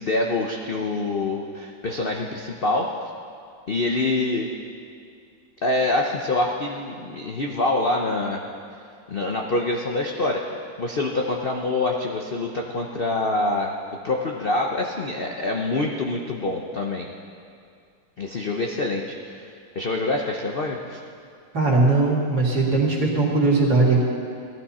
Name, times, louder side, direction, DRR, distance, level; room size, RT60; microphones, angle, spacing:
voice 1, 0.0-2.9 3.7-4.5 5.6-8.4 9.1-10.4 10.8-13.7 14.0-17.1 18.2-21.0, left 2 dB, 60° left, 1 dB, 0.5 m, -25 dB
voice 2, 21.5-24.0, right 3 dB, 55° right, -4 dB, 2.8 m, -19 dB
17.0 x 12.5 x 4.3 m, 2.3 s
omnidirectional pair, 2.1 m